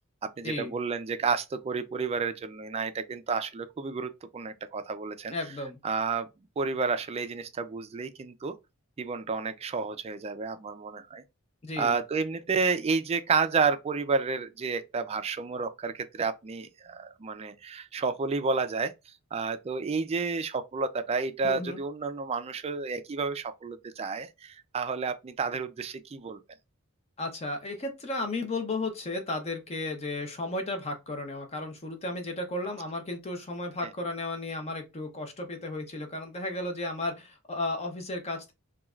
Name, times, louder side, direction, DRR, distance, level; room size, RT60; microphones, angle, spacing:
voice 1, 0.2-5.3 5.8-6.3 6.6-8.5 9.0-11.2 11.8-18.9 19.3-26.4, right 4 dB, 25° right, 0.3 m, -30 dB
voice 2, 5.3-5.8 11.6-11.9 21.4-21.8 27.2-38.5, left 2 dB, 30° left, 0.5 m, -34 dB
3.1 x 2.3 x 2.3 m
head